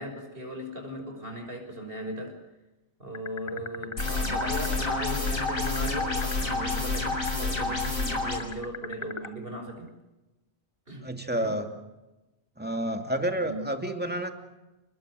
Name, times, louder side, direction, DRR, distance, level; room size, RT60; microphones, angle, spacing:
voice 1, 0.0-2.4 3.0-9.9 10.9-11.6 13.4-13.6, equal, 45° right, 4 dB, 6.2 m, -38 dB
sound 1, 3.1-9.3, left 3 dB, 25° left, 1.0 m, -37 dB
sound 2, 4.0-8.4, left 3 dB, 90° left, 7.6 m, -29 dB
voice 2, 11.0-11.7 12.6-14.3, right 1 dB, 5° right, 5 dB, 2.5 m, -29 dB
30.0 x 21.0 x 6.4 m, 1.0 s
omnidirectional pair, 1.4 m